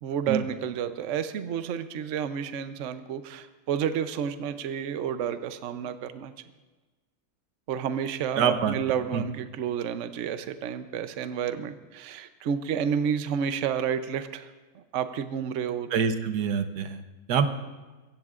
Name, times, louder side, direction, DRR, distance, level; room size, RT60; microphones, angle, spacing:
voice 1, 0.0-6.3 7.7-14.5 14.7-15.9, right 8 dB, 60° right, 10 dB, 0.9 m, -30 dB
voice 2, 8.4-8.7 9.1-9.2 15.9-17.0 17.3-17.5, right 7 dB, 85° right, 9 dB, 1.4 m, -25 dB
24.0 x 15.5 x 2.5 m, 1.2 s
omnidirectional pair, 1.7 m